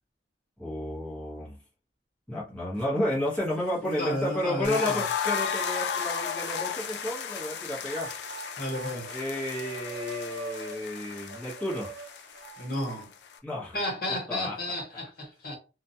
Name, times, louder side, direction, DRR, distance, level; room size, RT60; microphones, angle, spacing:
voice 1, 0.6-1.6 2.3-8.1 9.1-11.9 13.4-13.8 14.1-14.6, left 1 dB, 5° left, 0.8 m, -32 dB
sound 1, 2.8-2.9 3.4-4.3 4.9-5.0 6.1-7.3 7.8-12.7, right 2 dB, 75° right, 0.3 m, -43 dB
voice 2, 3.8-5.0 8.6-9.1 12.6-13.1 13.7-15.5, left 1 dB, 55° left, 1.1 m, -32 dB
sound 2, 4.6-13.4, left 7 dB, 75° left, 0.4 m, -34 dB
2.3 x 2.1 x 2.7 m
head